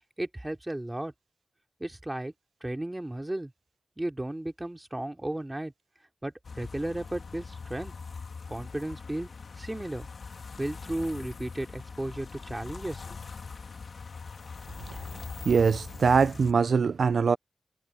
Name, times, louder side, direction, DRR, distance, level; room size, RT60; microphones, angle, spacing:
voice 1, 0.2-1.1 1.8-2.3 2.6-3.5 4.0-5.7 6.2-7.9 8.5-9.3 9.6-10.1 10.6-13.0, right 1 dB, 20° right, 2.9 m, -34 dB
sound 1, 6.4-16.5, left 5 dB, 70° left, 2.6 m, -42 dB
voice 2, 15.5-17.4, right 5 dB, 85° right, 0.4 m, -22 dB
wide cardioid pair, 70°, 0 cm